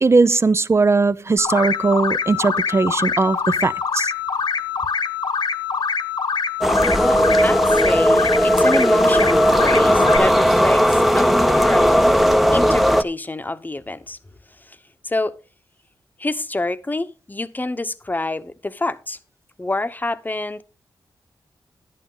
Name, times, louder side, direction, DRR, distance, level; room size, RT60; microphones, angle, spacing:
voice 1, 0.0-4.1, right 3 dB, 35° right, 0.6 m, -18 dB
sound 1, 1.4-10.2, left 6 dB, 65° left, 1.3 m, -24 dB
sound 2, 6.6-13.0, equal, ahead, 0.8 m, -16 dB
voice 2, 6.9-12.1 12.5-14.2 14.7-14.8 15.0-15.4 16.2-19.2 19.6-20.6, left 2 dB, 20° left, 1.0 m, -26 dB
11.0 x 9.3 x 3.9 m
cardioid pair, 60°, 8 cm